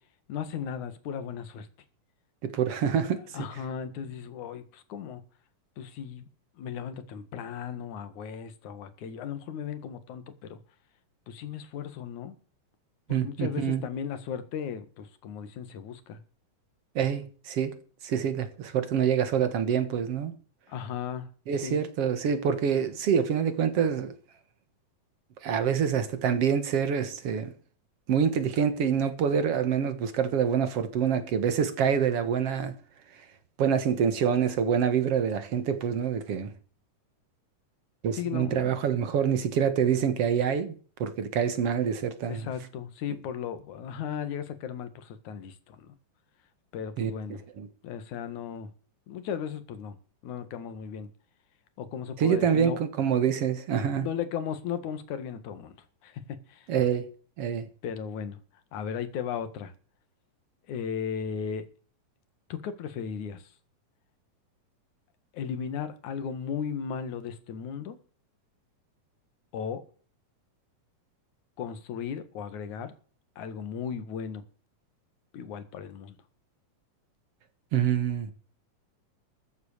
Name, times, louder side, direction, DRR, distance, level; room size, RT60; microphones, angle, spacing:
voice 1, 0.3-1.7 3.3-5.2 5.8-6.3 6.6-10.6 11.3-12.3 13.1-16.2 20.7-21.3 21.6-21.8 38.1-38.7 42.3-45.9 46.7-47.4 47.8-48.7 49.1-50.0 50.2-51.1 51.8-52.8 54.0-55.7 56.0-56.7 57.8-58.4 58.7-59.7 60.7-61.6 62.5-63.5 65.3-68.0 69.5-69.8 71.6-72.9 73.4-74.4 75.3-76.2, left 7 dB, 65° left, 2.9 m, -36 dB
voice 2, 2.4-3.5 13.1-13.8 17.0-17.7 18.0-20.3 21.5-24.2 25.4-27.5 28.1-32.7 33.6-36.5 38.0-40.7 41.0-42.4 47.0-47.1 47.6-47.7 52.2-54.1 56.7-57.1 57.4-57.7 77.7-78.3, right 8 dB, 55° right, 2.1 m, -26 dB
14.5 x 8.1 x 6.6 m
omnidirectional pair, 4.0 m